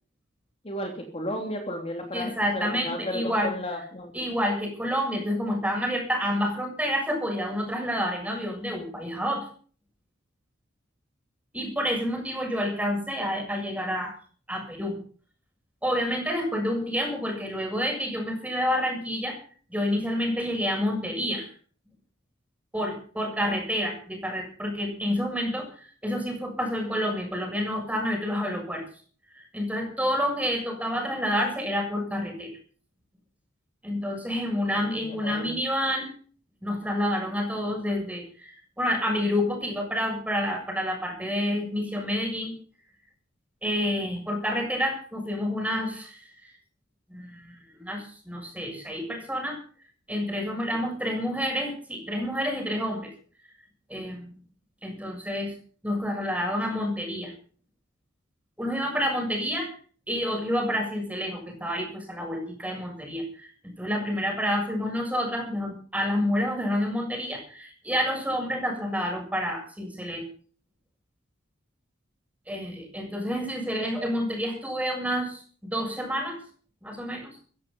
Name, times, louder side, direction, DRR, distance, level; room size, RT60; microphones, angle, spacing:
voice 1, 0.6-4.1 34.7-35.5, left 1 dB, 30° left, 2 dB, 3.1 m, -34 dB
voice 2, 2.1-3.5 4.1-9.5 11.5-14.2 14.5-15.0 15.8-19.4 19.7-21.5 22.7-28.8 29.4-32.5 33.8-36.1 36.6-42.5 43.6-46.5 47.1-49.6 50.1-53.1 53.9-54.4 54.8-55.5 55.8-57.3 58.6-59.7 60.1-70.3 72.5-76.4 76.8-77.4, equal, 5° right, 2 dB, 7.0 m, -29 dB
16.0 x 15.0 x 5.5 m, 0.43 s
head